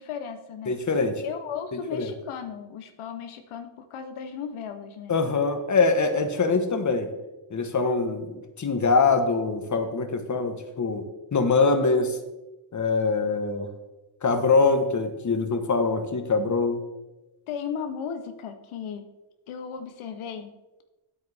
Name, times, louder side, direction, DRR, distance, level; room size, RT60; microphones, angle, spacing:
voice 1, 0.0-0.7 1.2-5.1 17.5-19.1 19.5-20.5, left 7 dB, 90° left, 8 dB, 0.8 m, -35 dB
voice 2, 0.7-1.2 1.7-2.1 5.1-7.1 7.5-11.0 11.3-12.2 12.7-13.7 14.2-16.8, left 4 dB, 35° left, 7 dB, 1.2 m, -23 dB
9.6 x 8.3 x 3.4 m, 1.0 s
cardioid pair, 85°, 48 cm